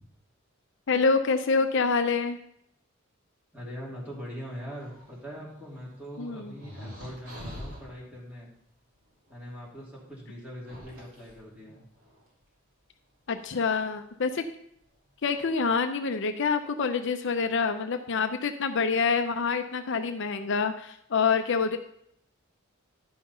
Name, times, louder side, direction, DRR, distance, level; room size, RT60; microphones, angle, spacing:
voice 1, 0.9-2.4 6.2-6.5 13.3-14.4 15.2-21.8, left 5 dB, 60° left, 7 dB, 0.6 m, -26 dB
voice 2, 3.5-8.5 9.3-11.9, equal, 5° right, -5 dB, 2.9 m, -42 dB
sound 1, 4.8-7.9 9.3-9.4 10.4-12.3 13.4-13.8 14.8-14.9 15.2-15.6, equal, 75° right, 3.1 m, -46 dB
11.0 x 5.8 x 5.5 m, 0.72 s
head